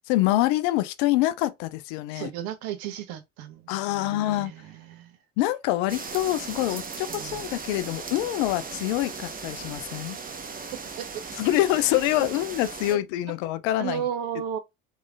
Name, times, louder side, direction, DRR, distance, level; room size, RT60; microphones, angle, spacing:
voice 1, 0.1-2.3 3.7-4.5 5.4-10.2 11.4-14.0, left 15 dB, 60° left, 0.5 m, -25 dB
voice 2, 2.1-5.2 7.1-7.4 11.0-11.1 12.2-12.3 13.8-14.6, right 9 dB, 55° right, 0.9 m, -34 dB
sound 1, 5.9-12.9, right 5 dB, 20° right, 0.7 m, -37 dB
3.6 x 3.1 x 2.2 m
figure-of-eight pair, 55°, 42 cm